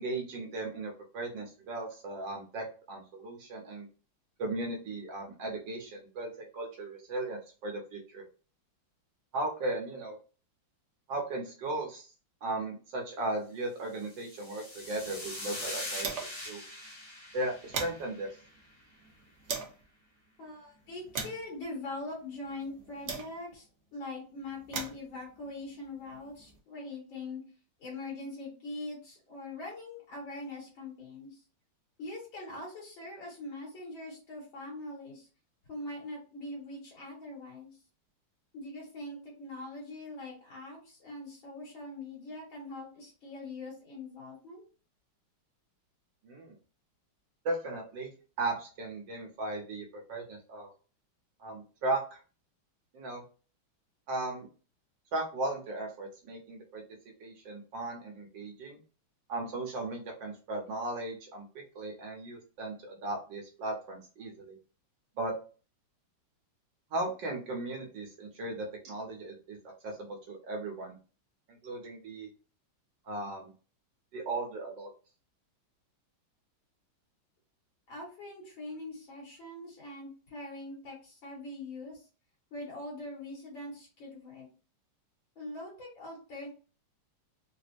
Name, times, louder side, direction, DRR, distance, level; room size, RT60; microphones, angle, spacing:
voice 1, 0.0-3.9 4.4-8.2 9.3-10.2 11.1-12.1 12.4-16.6 17.3-18.3 46.2-46.5 47.5-48.1 48.4-50.7 51.4-52.2 52.9-53.2 54.1-54.5 55.1-56.8 57.2-58.8 59.3-64.6 65.2-65.3 66.9-69.6 69.8-71.0 71.5-72.3 73.1-73.5 74.1-74.9, right 2 dB, 70° right, 1 dB, 1.6 m, -36 dB
sound 1, 14.0-18.5, left 1 dB, 30° left, 0.5 m, -42 dB
sound 2, 14.7-16.5 16.9-17.0 17.3-19.8 20.5-23.7 24.4-26.6, right 5 dB, 85° right, 0.6 m, -42 dB
voice 2, 20.4-27.4 27.8-31.4 32.0-35.3 35.7-37.8 38.5-44.6 77.9-82.1 82.5-84.5 85.4-86.5, left 2 dB, 70° left, -4 dB, 2.6 m, -42 dB
4.8 x 2.1 x 2.5 m, 0.36 s
omnidirectional pair, 2.2 m